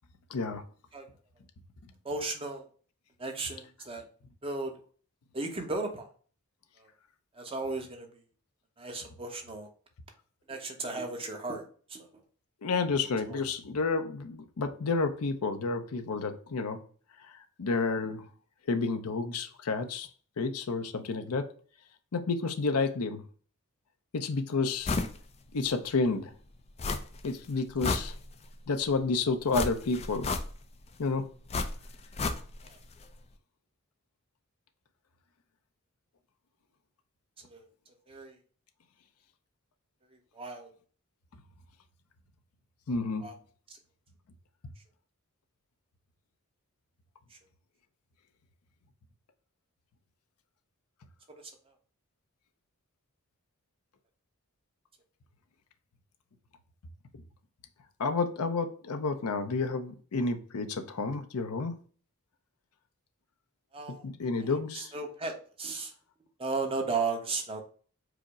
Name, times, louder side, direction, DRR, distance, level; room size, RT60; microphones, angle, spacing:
voice 1, 0.3-0.6 12.6-16.8 17.6-18.3 18.7-20.1 20.4-21.5 22.1-23.2 24.1-24.9 25.5-26.3 27.2-28.1 28.7-30.3 31.0-31.2 42.9-43.2 58.0-61.7 64.0-64.9, left 4 dB, 80° left, 0.6 m, -30 dB
voice 2, 2.0-2.7 3.2-4.0 4.4-4.7 5.3-6.1 6.8-6.9 7.3-8.2 8.8-9.7 10.5-12.1 13.3-13.5 32.6-32.8 37.4-37.6 38.1-38.4 40.3-40.7 43.2-43.3 47.3-47.4 63.7-64.1 64.7-65.9 66.4-67.6, right 3 dB, 25° right, 0.8 m, -35 dB
sound 1, 24.8-25.2 25.6-25.7 26.8-27.3 27.6-28.6 29.5-30.8 31.5-32.8 33.0-33.1, left 3 dB, 30° left, 0.4 m, -32 dB
4.8 x 2.0 x 4.7 m
head